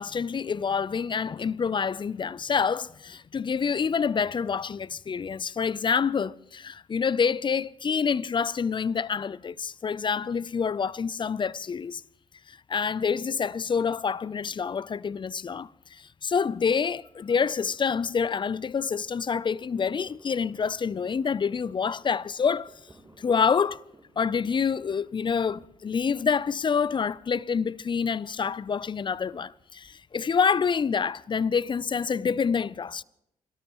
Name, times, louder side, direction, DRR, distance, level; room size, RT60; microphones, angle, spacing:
voice 1, 0.0-12.0 12.5-22.7 23.2-23.8 24.2-33.0, left 6 dB, 35° left, 0.5 m, -27 dB
sound 1, 19.5-25.7, right 2 dB, 20° right, 3.4 m, -57 dB
29.5 x 13.0 x 3.0 m
supercardioid pair, 55°, 15 cm